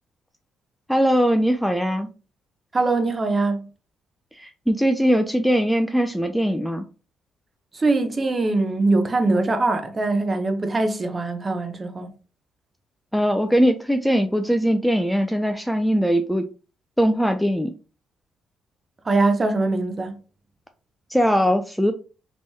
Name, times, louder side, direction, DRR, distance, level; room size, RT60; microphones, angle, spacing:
voice 1, 0.9-2.1 4.4-6.9 13.1-16.5 17.0-17.7 21.1-21.9, equal, ahead, 0.3 m, -20 dB
voice 2, 2.7-3.7 7.7-12.1 19.0-20.1, right 3 dB, 30° right, 0.7 m, -22 dB
3.5 x 3.0 x 2.7 m
cardioid pair, 90°, 0 cm